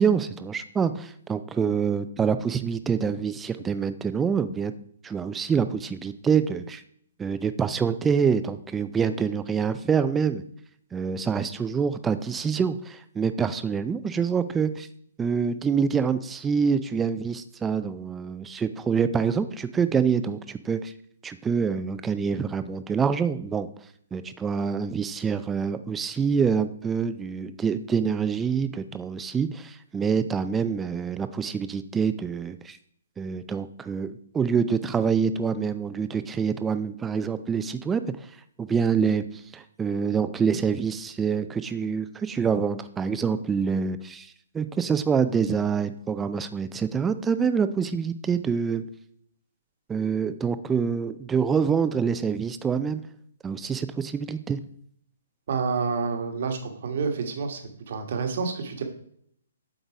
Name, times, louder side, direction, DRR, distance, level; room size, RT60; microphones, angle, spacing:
voice 1, 0.0-4.7 5.0-6.8 7.2-10.4 10.9-14.9 15.2-20.9 21.2-23.7 24.1-32.8 33.2-38.3 38.6-48.8 49.9-53.0 53.4-54.6, right 6 dB, 10° right, 11 dB, 0.4 m, -26 dB
voice 2, 55.5-57.6 57.9-58.8, right 5 dB, 60° right, 5 dB, 1.4 m, -28 dB
8.0 x 3.9 x 4.7 m, 0.66 s
hypercardioid pair, 140°, 0 cm